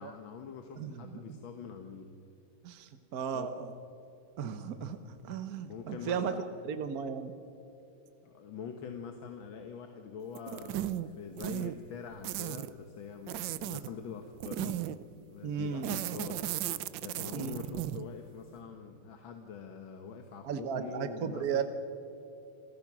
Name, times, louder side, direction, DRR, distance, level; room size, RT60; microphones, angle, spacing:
voice 1, 0.0-2.1 3.3-3.5 5.6-6.5 8.2-14.8 15.3-21.6, left 6 dB, 85° left, 5 dB, 1.9 m, -44 dB
voice 2, 0.8-1.4 2.6-3.7 4.4-6.3 6.6-7.3 15.4-16.0 17.3-17.6 20.4-21.6, right 7 dB, 55° right, 9 dB, 1.3 m, -35 dB
sound 1, 10.3-11.1 11.4-11.7 12.2-12.7 13.3-13.9 14.4-15.0 15.8-18.1, right 13 dB, 75° right, 1.3 m, -35 dB
27.5 x 15.5 x 6.1 m, 2.8 s
omnidirectional pair, 2.1 m